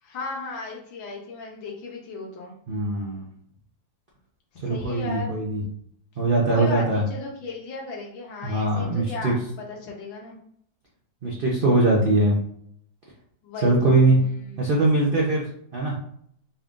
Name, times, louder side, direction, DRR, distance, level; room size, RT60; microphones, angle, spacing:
voice 1, 0.0-2.5 4.6-5.4 6.5-9.3 9.7-10.3 13.4-14.6, left 3 dB, 85° left, -1 dB, 1.6 m, -36 dB
voice 2, 2.7-3.2 4.6-5.6 6.2-7.0 8.4-9.3 11.2-12.4 13.6-14.2 14.6-15.4 15.7-15.9, right 2 dB, 90° right, -4 dB, 0.4 m, -21 dB
4.2 x 2.5 x 3.6 m, 0.67 s
omnidirectional pair, 2.0 m